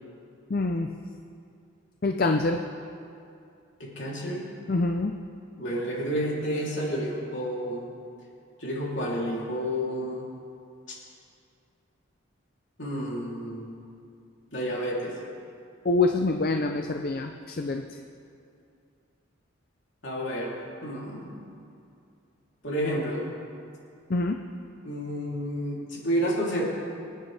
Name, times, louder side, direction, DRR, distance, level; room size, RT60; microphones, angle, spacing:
voice 1, 0.5-0.9 2.0-2.6 4.7-5.1 15.8-17.8 24.1-24.4, left 3 dB, 45° left, 5 dB, 0.5 m, -25 dB
voice 2, 3.8-4.5 5.6-7.9 8.6-10.3 12.8-13.7 14.5-15.2 20.0-20.6 20.8-21.4 22.6-23.3 24.8-26.6, equal, 65° left, -4 dB, 3.2 m, -30 dB
25.0 x 9.7 x 3.4 m, 2.5 s
head